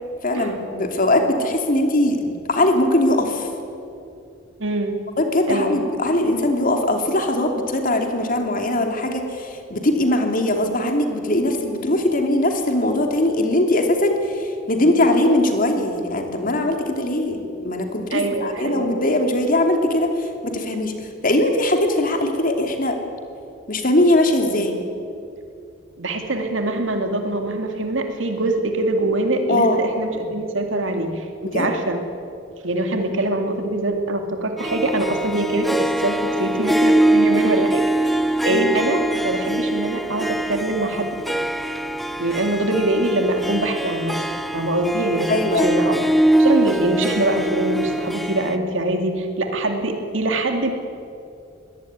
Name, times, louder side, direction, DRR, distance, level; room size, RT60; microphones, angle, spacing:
voice 1, 0.2-3.5 5.2-20.9 21.2-23.0 23.7-24.8 29.5-29.8 31.4-31.7 38.5-38.7 45.3-45.7, left 1 dB, 45° left, 4 dB, 2.8 m, -20 dB
voice 2, 4.6-5.0 5.5-5.8 18.1-18.9 26.0-32.0 32.6-41.2 42.2-44.2 44.5-46.0 46.4-50.7, right 1 dB, 90° right, 4 dB, 2.5 m, -23 dB
Harp, 34.6-48.6, right 1 dB, ahead, 1.0 m, -22 dB
22.5 x 18.0 x 9.5 m, 2.6 s
head